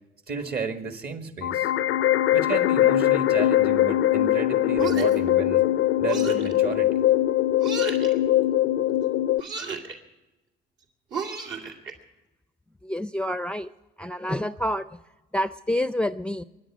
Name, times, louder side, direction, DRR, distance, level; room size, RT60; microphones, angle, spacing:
voice 1, 0.3-1.7 2.3-5.6 6.0-6.9, right 5 dB, 50° right, 7 dB, 1.9 m, -32 dB
sound 1, 1.4-9.4, left 13 dB, 80° left, 0.4 m, -21 dB
sound 2, 4.8-5.3 6.1-6.5 7.6-8.1 9.4-10.0 11.1-11.9, right 5 dB, 70° right, 2.5 m, -33 dB
voice 2, 12.8-13.7 14.0-14.8 15.3-16.4, left 1 dB, 5° left, 13 dB, 0.4 m, -27 dB
23.0 x 10.0 x 6.1 m, 1.1 s
cardioid pair, 90°, 20 cm